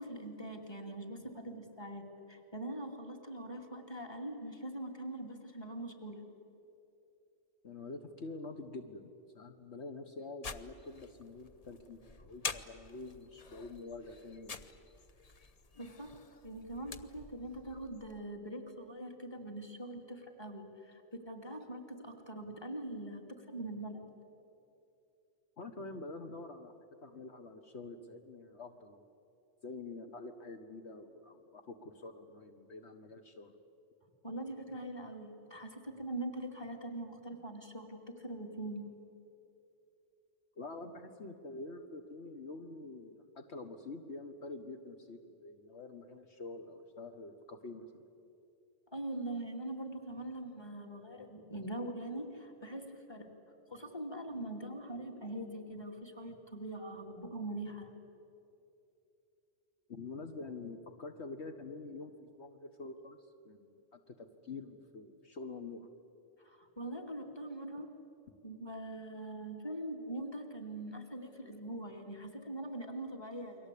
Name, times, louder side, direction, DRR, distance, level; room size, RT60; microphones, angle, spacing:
voice 1, 0.0-6.2 15.8-16.1 16.4-24.0 34.2-38.9 48.9-53.3 53.7-57.9 66.4-67.9 68.4-73.7, right 1 dB, 20° left, 3 dB, 2.6 m, -43 dB
voice 2, 7.6-14.6 25.6-26.7 27.0-29.0 29.6-33.6 40.6-48.1 59.9-63.2 63.4-65.9, left 3 dB, 65° left, 5 dB, 1.6 m, -47 dB
sound 1, 10.4-18.2, left 4 dB, 35° left, 0.8 m, -47 dB
29.5 x 23.0 x 8.5 m, 2.7 s
omnidirectional pair, 1.2 m